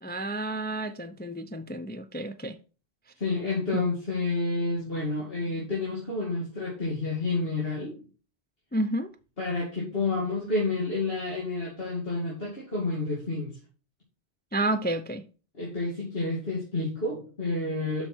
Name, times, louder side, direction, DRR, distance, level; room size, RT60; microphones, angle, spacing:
voice 1, 0.0-2.6 3.7-3.9 8.7-9.1 14.5-15.2, right 1 dB, 15° left, 0.3 m, -30 dB
voice 2, 3.2-8.0 9.4-13.6 15.6-18.1, left 3 dB, 65° left, 2.7 m, -29 dB
8.0 x 5.9 x 4.5 m
omnidirectional pair, 1.1 m